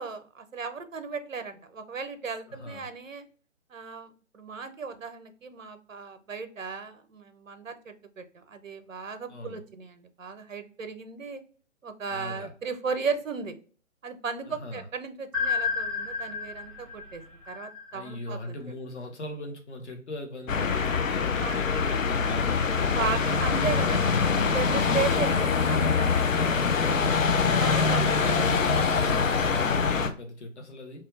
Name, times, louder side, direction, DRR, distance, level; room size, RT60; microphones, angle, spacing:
voice 1, 0.0-3.2 3.7-11.4 11.8-13.6 14.0-18.5 21.4-21.6 22.9-26.5 27.6-28.3, right 5 dB, 90° right, 0.7 m, -35 dB
voice 2, 2.5-2.9 9.3-9.6 12.1-12.5 14.5-14.8 17.9-23.6 27.2-31.1, left 1 dB, 60° left, 1.0 m, -39 dB
sound 1, 15.3-18.3, left 5 dB, 5° right, 0.6 m, -31 dB
sound 2, 20.5-30.1, left 5 dB, 90° left, 0.6 m, -24 dB
2.7 x 2.3 x 3.5 m
figure-of-eight pair, 140°, 38 cm